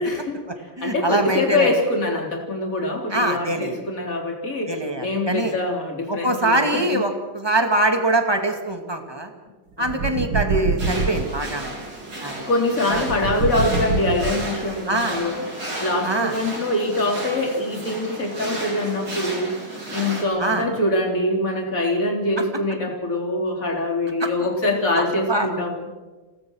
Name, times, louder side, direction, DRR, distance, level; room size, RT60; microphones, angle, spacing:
voice 1, 0.0-7.0 9.8-10.3 12.5-19.6 19.9-25.8, left 2 dB, 40° left, 1 dB, 3.9 m, -24 dB
voice 2, 0.8-1.7 3.1-3.8 4.7-5.5 6.1-9.3 9.8-11.7 12.2-12.4 12.9-13.1 14.9-15.2 16.0-16.3 20.4-20.7 24.2-24.3 25.0-25.1 25.3-25.5, right 1 dB, 10° right, 4 dB, 2.1 m, -23 dB
sound 1, 9.8-11.4 12.9-14.8, right 3 dB, 70° right, 2.2 m, -25 dB
sound 2, 10.8-20.2, right 1 dB, 45° right, 4.6 m, -33 dB
28.5 x 17.5 x 6.4 m, 1.3 s
omnidirectional pair, 2.4 m